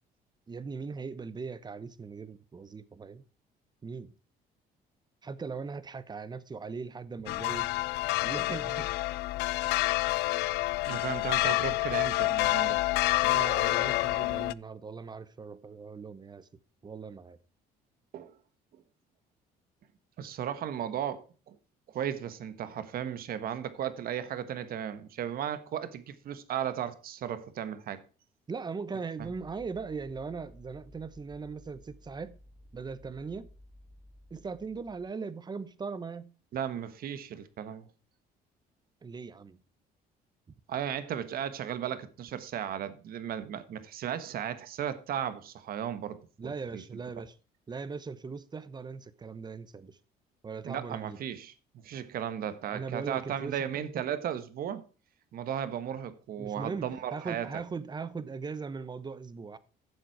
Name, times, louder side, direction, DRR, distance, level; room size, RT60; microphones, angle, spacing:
voice 1, 0.5-3.2 3.8-4.1 5.2-7.7 8.2-8.9 13.2-16.5 16.8-17.4 28.5-32.4 32.7-33.5 34.3-36.3 39.0-39.6 40.5-40.6 46.4-47.4 47.7-50.0 50.4-51.2 52.7-53.7 53.9-54.0 56.4-59.6, right 5 dB, 25° right, 1.0 m, -39 dB
sound 1, 7.3-14.5, left 20 dB, 90° left, 0.4 m, -28 dB
voice 2, 10.9-12.8 18.1-18.3 20.2-21.6 21.9-28.0 29.2-29.3 36.5-37.9 40.7-47.0 50.6-51.5 51.8-54.8 55.3-57.5, right 9 dB, 60° right, 1.4 m, -35 dB
sound 2, 29.2-35.1, left 1 dB, 5° right, 2.1 m, -55 dB
11.0 x 7.6 x 4.7 m
cardioid pair, 110°, 17 cm